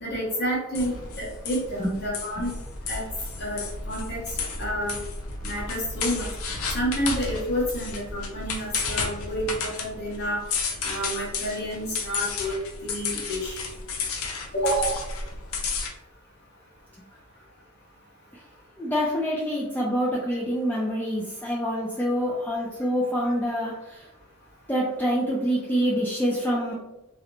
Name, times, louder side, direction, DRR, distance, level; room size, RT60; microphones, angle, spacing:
voice 1, 0.0-2.5 2.9-3.0 3.4-4.2 4.6-5.0 5.4-6.3 6.7-10.4 10.8-12.5 12.8-13.7 14.5-15.0, equal, 50° left, -5 dB, 0.9 m, -29 dB
sound 1, 0.7-15.9, left 4 dB, 80° left, 0.5 m, -32 dB
voice 2, 18.8-24.1 24.7-26.7, equal, 10° left, -6 dB, 0.4 m, -26 dB
2.4 x 2.0 x 2.9 m, 0.98 s
head